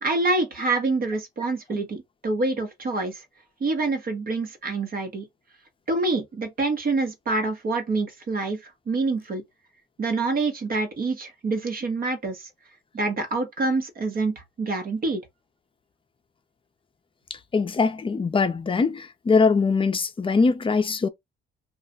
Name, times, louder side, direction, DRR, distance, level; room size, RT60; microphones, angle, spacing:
voice 1, 0.0-3.2 3.6-5.3 5.9-9.4 10.0-12.5 12.9-15.2, right 3 dB, 45° right, 1.0 m, -26 dB
voice 2, 17.5-21.1, left 4 dB, 25° left, 0.5 m, -22 dB
2.4 x 2.1 x 3.8 m
cardioid pair, 90°, 20 cm